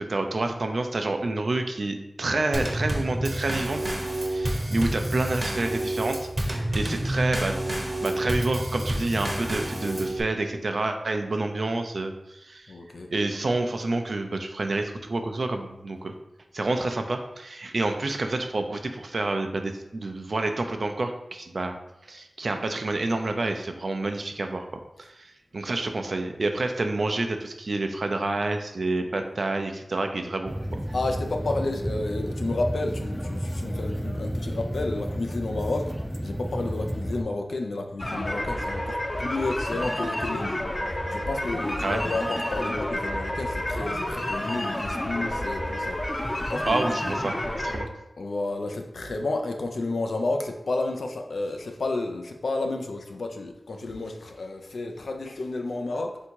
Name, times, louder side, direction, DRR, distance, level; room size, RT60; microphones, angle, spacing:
voice 1, 0.0-3.8 4.1-6.2 6.5-7.5 8.0-12.7 13.1-16.1 16.5-21.8 22.1-24.7 25.0-30.8 41.8-42.0 46.6-47.9, right 2 dB, 70° right, 6 dB, 0.4 m, -28 dB
Drum kit / Snare drum / Bass drum, 2.5-10.2, right 1 dB, 40° right, 0.9 m, -28 dB
voice 2, 12.7-13.1 30.9-35.9 36.2-40.6 41.1-46.0 46.4-47.1 48.2-56.2, left 2 dB, 85° left, 4 dB, 0.5 m, -31 dB
sound 1, 30.4-37.2, equal, 10° right, 0.5 m, -31 dB
sound 2, 38.0-47.8, left 1 dB, 30° left, 0.7 m, -30 dB
3.7 x 2.8 x 4.4 m, 0.90 s
cardioid pair, 45°, 0 cm